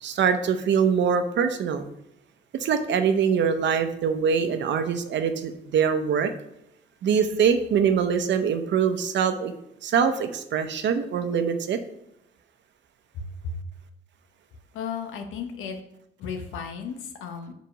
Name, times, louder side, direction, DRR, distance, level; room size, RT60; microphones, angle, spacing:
voice 1, 0.0-1.8 2.6-6.3 7.0-9.5 9.8-11.8, right 7 dB, 65° right, 9 dB, 0.7 m, -23 dB
voice 2, 13.2-13.6 14.7-15.8 16.2-17.5, left 6 dB, 90° left, 6 dB, 0.9 m, -34 dB
5.0 x 4.7 x 5.1 m, 0.81 s
cardioid pair, 90°, 20 cm